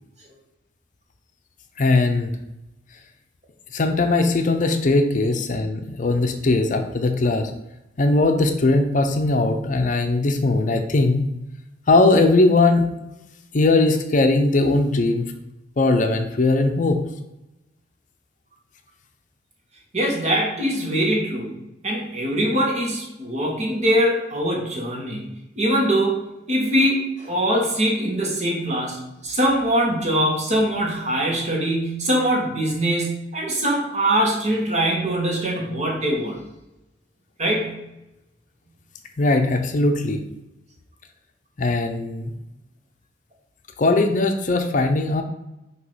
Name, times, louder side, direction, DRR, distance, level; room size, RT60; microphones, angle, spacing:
voice 1, 1.8-2.3 3.7-7.5 8.0-11.3 11.9-12.9 13.5-15.3 15.8-17.0 39.2-40.2 41.6-42.3 43.8-45.2, left 2 dB, 45° left, 5 dB, 0.6 m, -19 dB
voice 2, 19.9-21.6 21.8-25.3 25.5-26.2 26.5-36.4 37.4-37.7, right 1 dB, 40° right, -1 dB, 1.5 m, -22 dB
6.2 x 2.9 x 5.5 m, 0.92 s
head